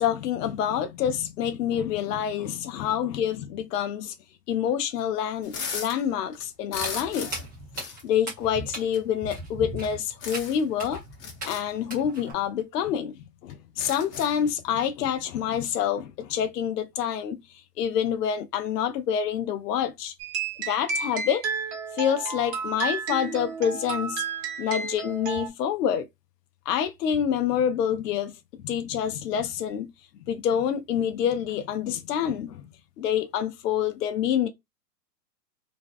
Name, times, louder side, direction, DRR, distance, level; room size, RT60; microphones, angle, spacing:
voice 1, 0.0-4.1 4.5-7.3 7.8-11.0 11.5-17.4 17.8-20.1 20.6-21.4 21.9-24.2 24.6-26.0 26.7-28.3 28.6-29.9 30.3-32.7 33.0-34.5, left 9 dB, 70° left, 0.6 m, -27 dB
sound 1, 5.4-6.0 6.3-7.5 7.7-8.0 9.0-9.1 10.2-10.7 11.1-11.6 12.6-12.7 13.0-13.1 13.5-14.4, left 5 dB, 45° left, 0.9 m, -36 dB
Walk footsteps, 6.7-12.3, right 1 dB, 15° right, 0.3 m, -39 dB
sound 2, 20.2-25.5, right 5 dB, 40° right, 0.9 m, -32 dB
2.5 x 2.1 x 2.4 m
hypercardioid pair, 125°, 50 cm